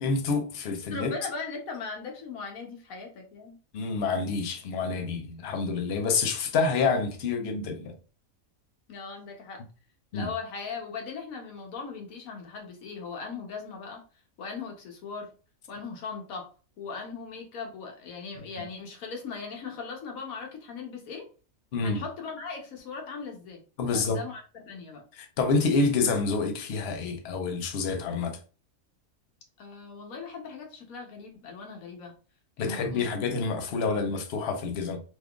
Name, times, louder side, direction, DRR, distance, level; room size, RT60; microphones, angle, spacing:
voice 1, 0.0-1.1 3.7-7.9 10.1-10.3 21.7-22.0 23.8-24.2 25.1-28.4 32.6-35.0, left 4 dB, 55° left, 0.8 m, -28 dB
voice 2, 0.9-3.6 8.9-9.6 10.1-14.0 14.4-15.3 15.7-16.5 16.8-21.3 21.8-23.6 23.9-25.0 29.6-32.1 32.6-33.3 33.7-34.0, left 5 dB, 80° left, 1.2 m, -39 dB
3.5 x 3.0 x 2.3 m
omnidirectional pair, 1.4 m